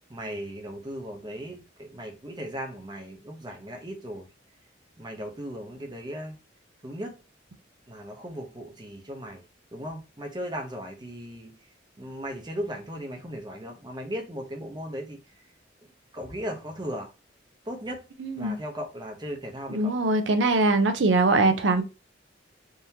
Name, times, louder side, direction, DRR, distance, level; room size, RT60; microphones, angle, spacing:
voice 1, 0.1-4.3 5.0-6.4 6.8-7.2 7.9-9.4 9.7-11.6 12.0-15.2 16.1-17.1 17.7-18.0 18.4-19.9, equal, 25° right, 0.8 m, -37 dB
voice 2, 18.2-18.6 19.7-21.8, right 2 dB, 75° right, 0.6 m, -22 dB
3.6 x 2.8 x 2.8 m
head